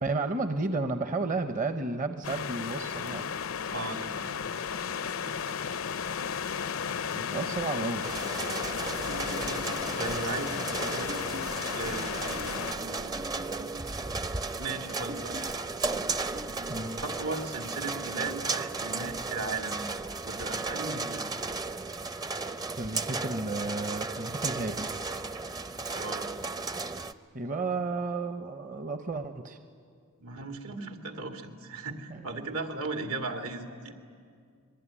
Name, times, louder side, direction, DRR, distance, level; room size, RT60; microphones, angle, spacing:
voice 1, 0.0-3.3 7.1-8.1 16.7-17.0 22.8-24.9 27.3-29.6 32.1-32.6, right 3 dB, 40° right, 8 dB, 0.8 m, -32 dB
sound 1, 2.2-12.7, left 7 dB, 70° left, 0.6 m, -34 dB
voice 2, 3.7-5.8 10.0-11.1 11.8-13.2 14.6-15.4 17.0-19.8 20.2-21.2 25.9-26.3 30.2-33.9, right 3 dB, 80° right, 4 dB, 2.2 m, -37 dB
sound 2, 8.0-27.1, right 3 dB, 20° right, 0.6 m, -35 dB
sound 3, 9.1-10.3 10.6-17.1, right 1 dB, 55° right, 1.6 m, -44 dB
25.5 x 21.5 x 10.0 m, 2.2 s
head